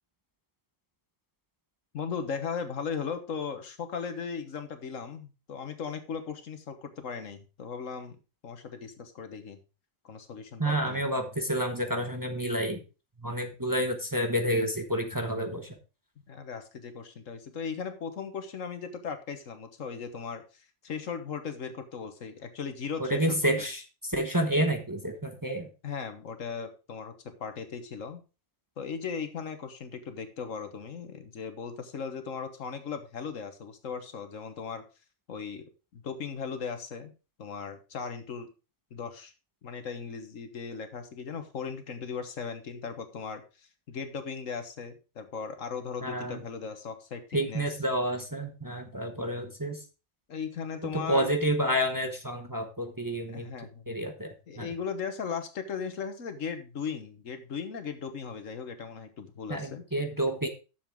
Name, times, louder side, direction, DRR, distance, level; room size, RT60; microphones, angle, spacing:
voice 1, 1.9-8.2 8.4-9.6 10.0-11.0 16.3-23.5 25.8-27.1 27.4-28.2 28.8-34.8 35.3-37.1 37.4-38.5 38.9-39.3 39.6-47.7 50.3-51.3 53.3-54.0 54.5-59.8, left 6 dB, 75° left, 8 dB, 1.6 m, -37 dB
voice 2, 10.6-12.8 13.2-15.7 23.0-25.7 46.0-46.4 47.3-49.8 50.9-53.5 53.9-54.7 59.5-60.5, right 1 dB, 15° right, 4 dB, 1.0 m, -29 dB
10.0 x 7.1 x 3.6 m, 0.31 s
omnidirectional pair, 1.3 m